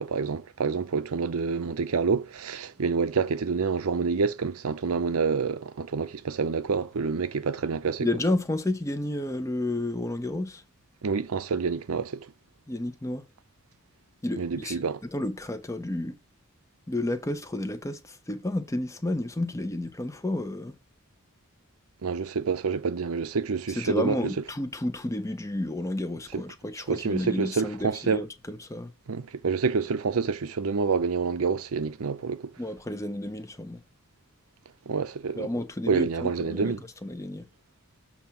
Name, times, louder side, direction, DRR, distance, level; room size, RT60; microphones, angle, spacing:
voice 1, 0.0-8.1 11.0-12.3 14.3-15.0 22.0-24.3 26.3-26.4 26.9-28.3 29.1-32.5 34.9-35.5 35.9-36.8, right 5 dB, 75° right, 0.6 m, -27 dB
voice 2, 8.0-10.6 12.7-13.2 14.2-14.8 15.1-16.2 16.9-20.8 23.8-28.9 32.6-33.8 35.4-36.8 37.0-37.4, left 1 dB, 15° left, 0.5 m, -31 dB
7.0 x 2.8 x 5.7 m
head